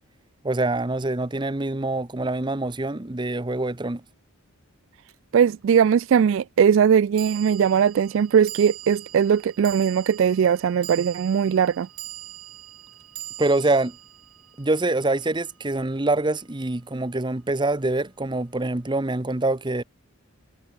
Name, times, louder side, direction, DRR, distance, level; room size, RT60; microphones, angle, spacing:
voice 1, 0.4-4.0 13.4-14.0 14.6-19.8, right 2 dB, 20° right, 0.8 m, -25 dB
sound 1, 5.1-5.2 7.2-15.6, right 14 dB, 80° right, 4.9 m, -41 dB
voice 2, 5.3-11.9, right 7 dB, 60° right, 0.3 m, -20 dB
head